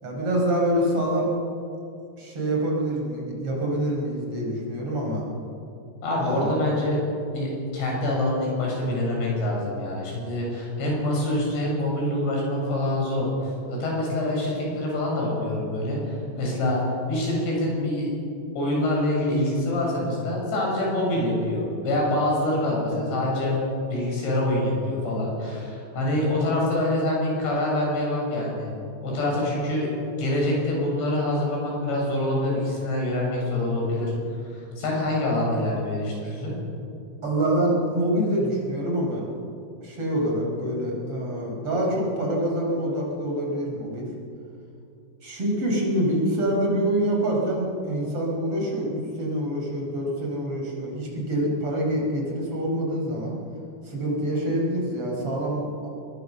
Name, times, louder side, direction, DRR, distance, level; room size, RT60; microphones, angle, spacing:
voice 1, 0.0-1.3 2.2-5.2 6.2-6.5 37.2-39.3 39.8-44.1 45.2-53.4 53.8-55.9, right 1 dB, 30° right, -1 dB, 5.7 m, -26 dB
voice 2, 6.0-7.0 7.3-13.3 13.7-16.8 17.1-18.1 18.6-23.6 23.9-28.7 29.0-29.9 30.2-34.1 34.5-36.5, left 1 dB, 75° left, -2 dB, 9.2 m, -25 dB
24.0 x 21.5 x 6.9 m, 2.6 s
omnidirectional pair, 5.1 m